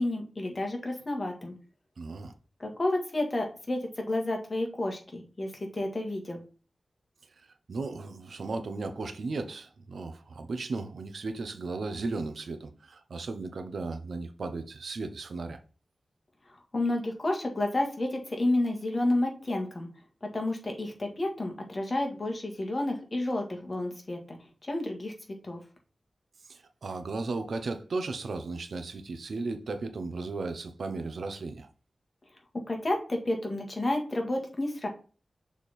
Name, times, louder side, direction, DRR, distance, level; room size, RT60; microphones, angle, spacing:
voice 1, 0.0-1.5 2.6-6.4 16.7-19.9 20.2-25.1 25.4-25.6 32.7-34.9, left 1 dB, 35° left, 1.7 m, -30 dB
voice 2, 2.0-2.3 7.7-15.6 26.5-31.7, right 3 dB, 80° right, 0.7 m, -35 dB
6.4 x 3.5 x 4.2 m
wide cardioid pair, 105°, 0 cm